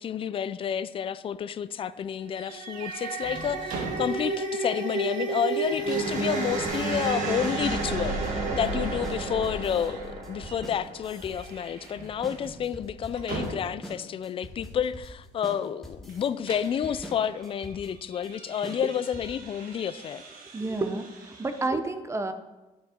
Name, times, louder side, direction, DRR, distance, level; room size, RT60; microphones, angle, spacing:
voice 1, 0.0-20.2, left 8 dB, 40° left, 0.4 m, -30 dB
sound 1, 2.3-11.6, right 3 dB, 60° right, 1.8 m, -31 dB
sound 2, 2.4-4.5 4.8-4.9 5.5-10.1 10.4-10.7 11.1-14.0 16.1-21.7, right 3 dB, 80° right, 1.4 m, -43 dB
sound 3, 6.6-19.5, left 1 dB, ahead, 1.3 m, -44 dB
voice 2, 20.5-22.3, right 3 dB, 20° right, 0.7 m, -30 dB
11.5 x 5.3 x 4.4 m
cardioid pair, 140°, 14 cm